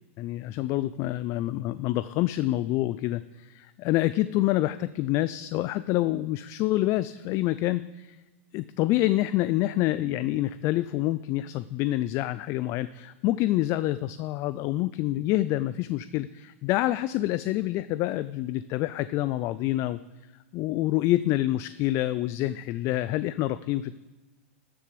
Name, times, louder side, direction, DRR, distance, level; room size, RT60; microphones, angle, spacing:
voice 1, 0.2-8.2 8.5-20.0 20.5-23.9, left 15 dB, 40° left, 15 dB, 0.3 m, -27 dB
14.5 x 6.9 x 5.1 m, 1.2 s
hypercardioid pair, 120°, 7 cm